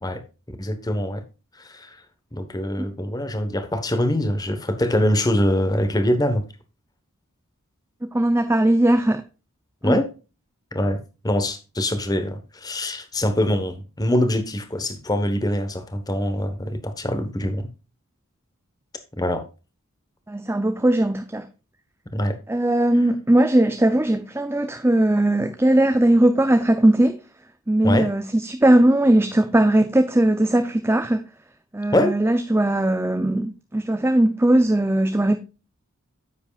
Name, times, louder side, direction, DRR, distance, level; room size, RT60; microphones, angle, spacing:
voice 1, 0.6-1.2 1.6-2.0 2.3-6.4 9.8-10.1 10.7-11.0 11.2-17.7 19.2-19.4 22.1-22.4 27.8-28.1 31.9-32.1, left 1 dB, 15° left, 1.1 m, -23 dB
voice 2, 8.1-9.2 9.8-10.0 20.3-21.5 22.5-27.2 27.7-31.2 31.7-35.4, right 1 dB, 10° right, 0.5 m, -19 dB
9.8 x 8.0 x 2.4 m
head